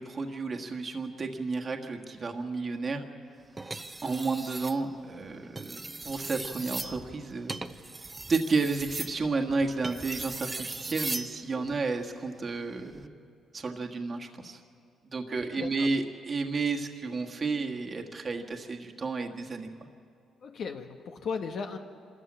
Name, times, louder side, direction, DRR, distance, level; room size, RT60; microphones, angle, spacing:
voice 1, 0.0-3.0 4.0-13.1 13.5-14.6 15.0-19.7, right 3 dB, 40° right, 2 dB, 1.5 m, -32 dB
sound 1, 3.6-4.8 5.4-11.3 12.8-13.1, right 3 dB, 20° right, 0.8 m, -38 dB
voice 2, 15.5-15.9 20.4-21.8, left 5 dB, 60° left, 5 dB, 1.1 m, -36 dB
25.0 x 13.5 x 8.7 m, 2.4 s
cardioid pair, 90°, 0 cm